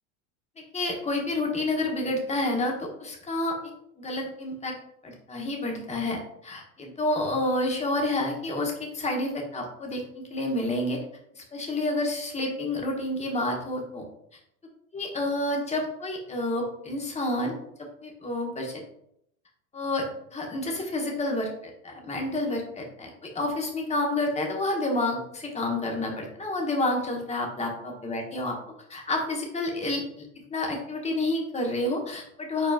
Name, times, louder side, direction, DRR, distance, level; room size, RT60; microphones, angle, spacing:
voice 1, 0.6-3.5 4.0-4.7 5.0-11.0 11.3-14.1 14.9-18.8 19.7-20.1 20.3-28.6 28.9-30.0 30.5-32.7, left 2 dB, 15° left, 1 dB, 1.2 m, -29 dB
4.9 x 4.3 x 2.5 m, 0.74 s
hypercardioid pair, 100°, 43 cm